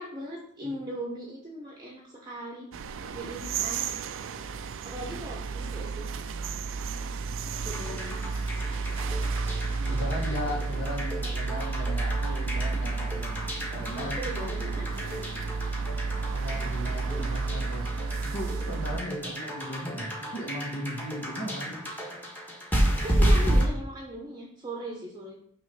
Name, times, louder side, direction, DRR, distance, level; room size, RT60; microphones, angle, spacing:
voice 1, 0.0-3.8 4.8-6.1 7.0-7.3 7.6-8.2 10.2-10.4 14.0-15.3 22.9-25.4, right 1 dB, 20° right, -2 dB, 0.8 m, -39 dB
sound 1, 2.7-19.0, right 4 dB, 65° right, 0.4 m, -32 dB
sound 2, 7.7-23.6, equal, 10° left, 1.3 m, -31 dB
voice 2, 9.9-14.2 16.3-17.9 18.2-21.9, equal, 60° left, -3 dB, 2.0 m, -37 dB
6.3 x 3.1 x 5.5 m, 0.63 s
head